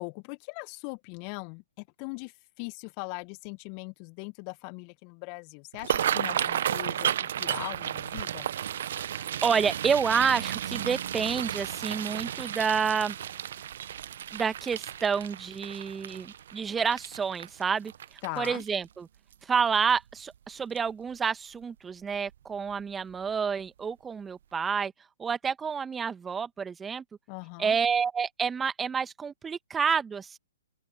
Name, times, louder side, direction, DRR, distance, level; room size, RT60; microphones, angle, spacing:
voice 1, 0.0-8.5 18.2-18.6 27.3-27.8, left 35 dB, 35° left, 1.6 m, -40 dB
sound 1, 5.7-18.9 19.3-19.6 19.9-20.4 20.8-20.9 22.1-22.3 22.7-22.8 23.3-23.4, right 10 dB, 55° right, 1.1 m, -33 dB
voice 2, 9.2-13.1 14.3-17.9 18.4-19.1 19.4-24.9 25.2-27.0 27.6-30.4, right 6 dB, 10° right, 1.5 m, -29 dB
open air
figure-of-eight pair, 120°, 0 cm